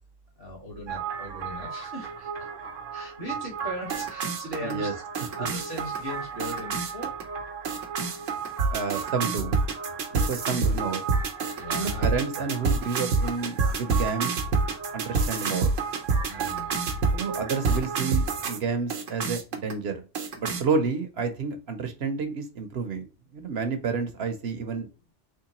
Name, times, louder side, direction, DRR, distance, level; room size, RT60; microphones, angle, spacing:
voice 1, 0.4-2.3 2.9-7.1 10.3-10.6 11.6-12.1 16.2-16.7, left 1 dB, 50° left, -2 dB, 1.7 m, -39 dB
sound 1, 0.9-18.6 18.9-19.7 20.1-20.6, right 4 dB, 85° right, 1.1 m, -29 dB
voice 2, 4.6-4.9 8.7-9.6 10.1-11.0 11.8-14.3 14.9-15.7 17.1-20.0 20.4-23.1 23.3-24.9, right 5 dB, 60° right, 7 dB, 0.9 m, -30 dB
3.7 x 3.1 x 2.9 m, 0.33 s
omnidirectional pair, 1.3 m